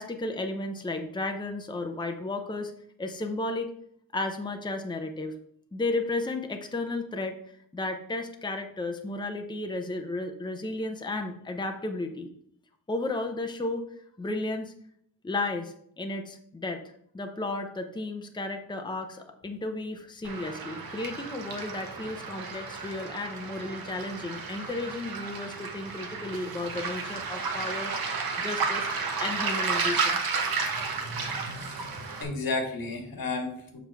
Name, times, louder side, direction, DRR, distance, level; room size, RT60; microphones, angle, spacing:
voice 1, 0.0-2.7 3.0-3.7 4.1-5.3 5.7-7.3 7.7-12.3 12.9-13.8 14.2-14.7 15.2-16.8 17.1-30.2, left 2 dB, 15° left, 5 dB, 0.7 m, -33 dB
Waves surf, 20.2-32.2, right 4 dB, 85° right, 1.3 m, -32 dB
voice 2, 30.7-31.9 32.2-33.8, left 3 dB, 80° left, 3 dB, 1.7 m, -34 dB
7.1 x 6.0 x 3.5 m, 0.68 s
wide cardioid pair, 130°, 35 cm